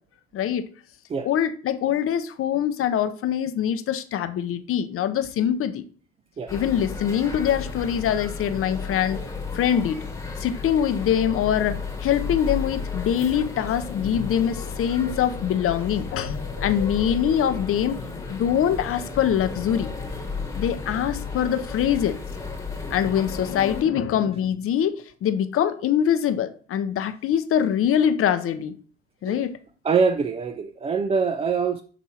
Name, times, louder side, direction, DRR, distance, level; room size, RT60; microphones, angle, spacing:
voice 1, 0.3-0.6 1.2-5.9 6.5-9.2 9.5-10.0 10.4-16.3 16.6-18.0 18.3-19.9 20.6-22.2 22.9-24.9 25.2-28.7 29.2-29.5, left 9 dB, 45° left, 0.7 m, -23 dB
sound 1, 6.5-23.8, left 4 dB, 10° left, 1.2 m, -33 dB
sound 2, 13.8-18.4, left 7 dB, 70° left, 1.1 m, -40 dB
voice 2, 29.8-31.8, right 5 dB, 20° right, 0.3 m, -24 dB
10.0 x 3.5 x 2.8 m
supercardioid pair, 80°, 32 cm